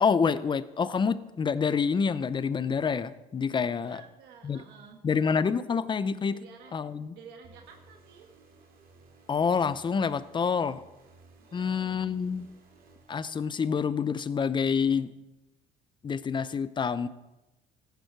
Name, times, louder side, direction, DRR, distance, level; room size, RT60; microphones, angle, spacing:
voice 1, 0.0-4.0 4.4-4.6 5.0-6.4 6.7-7.1 9.3-10.8 11.5-12.5 13.1-15.1 16.0-17.1, left 6 dB, 30° left, 15 dB, 0.6 m, -27 dB
voice 2, 3.8-5.0 6.3-6.8 7.1-8.3 11.4-12.1, right 6 dB, 85° right, 3 dB, 1.3 m, -51 dB
sound 1, 7.4-13.9, right 3 dB, 60° right, 2.4 m, -58 dB
14.5 x 9.2 x 4.6 m, 1.0 s
cardioid pair, 110°, 17 cm